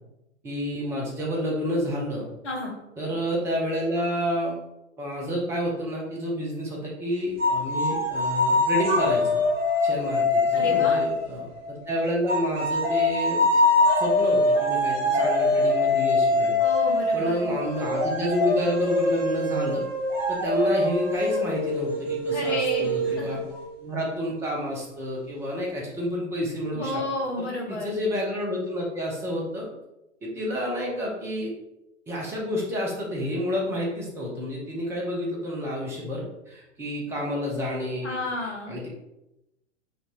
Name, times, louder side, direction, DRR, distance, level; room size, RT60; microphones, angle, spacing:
voice 1, 0.4-2.3 3.0-4.6 5.0-9.4 9.8-13.4 14.0-16.6 17.1-19.8 20.3-23.4 23.8-27.0 27.4-29.7 30.2-31.5 32.1-38.2 38.7-38.9, equal, 5° right, -2 dB, 0.6 m, -29 dB
voice 2, 2.4-2.7 10.5-11.0 16.6-17.6 22.3-23.4 26.7-28.0 38.0-38.7, left 1 dB, 65° left, -2 dB, 1.4 m, -31 dB
sound 1, 7.4-11.7 12.3-23.6, left 2 dB, 25° right, 1.5 m, -24 dB
5.8 x 2.6 x 3.0 m, 0.91 s
figure-of-eight pair, 110°, 38 cm